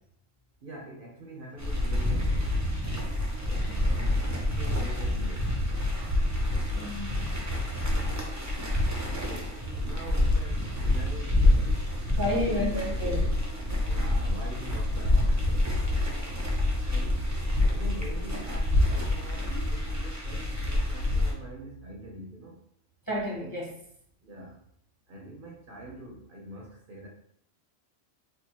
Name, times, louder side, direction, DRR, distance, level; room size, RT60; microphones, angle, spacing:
voice 1, 0.6-2.5 4.2-5.7 9.2-15.7 16.8-17.3 17.7-22.6 24.2-24.6 25.1-27.1, right 1 dB, 55° right, -2 dB, 0.7 m, -44 dB
sound 1, 1.6-21.3, left 1 dB, 25° right, 0.3 m, -27 dB
voice 2, 3.5-4.2 6.7-7.4 12.2-13.2 23.1-23.7, left 1 dB, 20° left, -3 dB, 0.6 m, -32 dB
4.5 x 2.1 x 2.9 m, 0.68 s
omnidirectional pair, 1.3 m